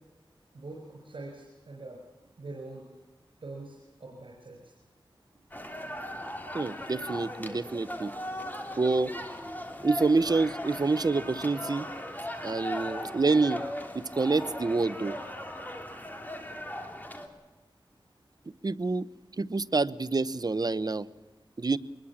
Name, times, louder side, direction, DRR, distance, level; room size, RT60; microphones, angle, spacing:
voice 1, 0.5-2.0 2.4-2.9 3.4-4.7, right 2 dB, 70° right, 0 dB, 5.6 m, -44 dB
sound 1, 5.5-17.3, left 1 dB, 20° left, 3.3 m, -38 dB
voice 2, 6.5-8.1 8.8-9.1 9.8-11.9 12.4-13.6 13.9-15.2 18.6-19.1 19.4-21.1 21.6-21.8, right 3 dB, 50° right, 15 dB, 0.8 m, -27 dB
24.0 x 21.5 x 7.3 m, 1.2 s
wide cardioid pair, 70°, 9 cm